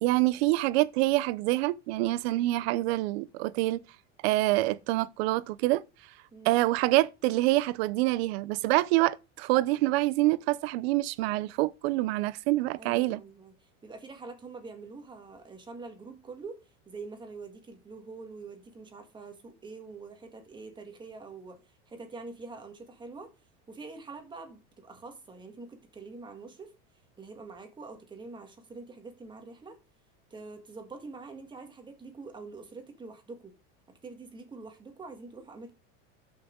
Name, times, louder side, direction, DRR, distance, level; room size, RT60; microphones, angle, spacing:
voice 1, 0.0-3.8 4.2-5.8 6.4-13.2, right 18 dB, 60° right, 0.7 m, -26 dB
voice 2, 12.8-23.3 23.7-26.7 27.2-29.8 30.3-33.5 34.0-35.7, right 3 dB, 15° right, 1.6 m, -45 dB
13.0 x 5.8 x 3.8 m
supercardioid pair, 160°, 35 cm